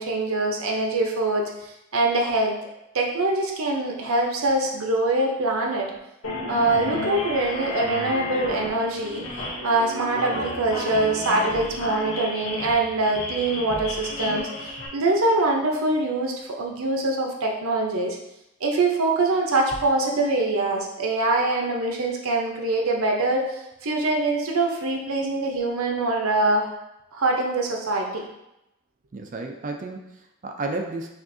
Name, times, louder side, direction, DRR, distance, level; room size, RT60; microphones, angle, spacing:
voice 1, 0.0-2.6 2.9-5.9 6.5-9.2 9.6-14.5 14.9-18.2 18.6-26.7 27.1-28.2, right 2 dB, 85° right, 1 dB, 0.7 m, -24 dB
sound 1, 6.2-14.9, left 1 dB, 75° left, 0.9 m, -32 dB
voice 2, 29.1-31.1, right 3 dB, 35° right, 3 dB, 0.4 m, -32 dB
6.0 x 2.5 x 2.6 m, 0.89 s
head